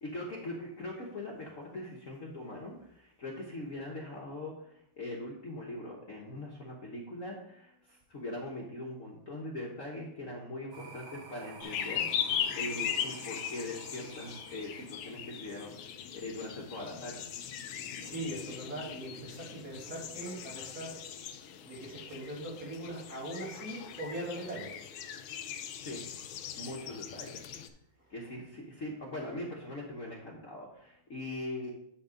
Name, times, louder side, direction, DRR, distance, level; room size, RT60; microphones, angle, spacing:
voice 1, 0.0-12.3 12.5-15.7 16.2-17.3 25.8-26.0 26.6-27.4 28.1-31.7, left 1 dB, 45° left, -3 dB, 1.3 m, -41 dB
sound 1, 10.7-15.8, right 4 dB, 70° right, 1.8 m, -50 dB
sound 2, 11.6-27.7, left 9 dB, 75° left, 1.4 m, -39 dB
voice 2, 18.0-21.0 21.7-24.7, right 1 dB, 45° right, -6 dB, 3.3 m, -40 dB
10.0 x 3.7 x 4.9 m, 0.74 s
omnidirectional pair, 2.4 m